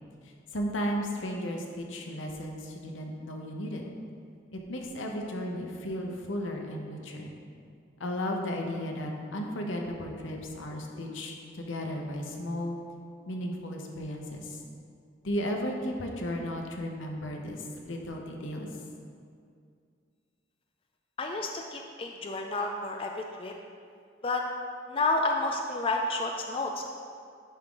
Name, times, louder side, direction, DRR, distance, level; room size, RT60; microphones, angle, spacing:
voice 1, 0.5-3.9 4.5-7.3 8.0-12.8 13.3-14.6 15.2-18.7, equal, 85° left, 1 dB, 0.9 m, -34 dB
voice 2, 21.2-23.5 24.2-24.4 24.9-26.9, left 2 dB, 30° left, 2 dB, 0.4 m, -30 dB
11.0 x 3.7 x 3.8 m, 2.3 s
head